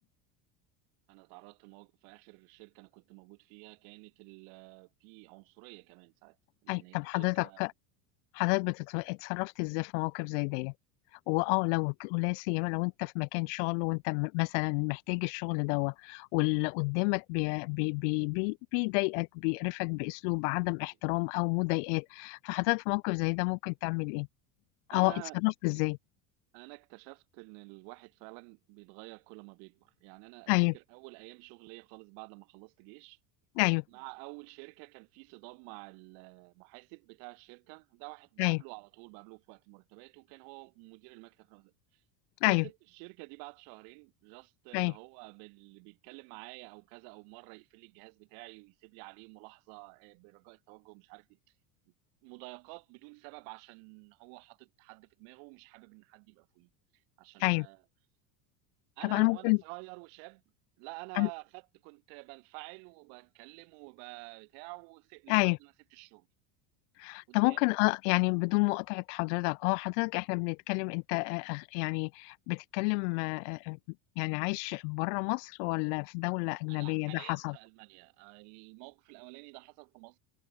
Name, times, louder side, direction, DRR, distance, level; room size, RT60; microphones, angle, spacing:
voice 1, 1.1-6.4 6.6-7.7 20.8-21.0 24.9-25.4 26.5-33.2 33.9-42.0 42.4-51.4 51.9-52.0 52.2-57.8 59.0-60.4 60.8-66.3 67.3-67.7 76.7-80.2, right 40 dB or more, 60° right, 3.8 m, -50 dB
voice 2, 6.7-7.7 8.3-10.7 11.3-24.3 24.9-26.0 30.5-30.7 33.6-33.8 38.4-38.6 42.4-42.6 44.7-44.9 57.4-57.7 59.0-59.6 61.2-61.3 65.3-65.6 67.0-73.8 74.2-77.6, left 34 dB, 55° left, 0.5 m, -30 dB
cardioid pair, 160°, 44 cm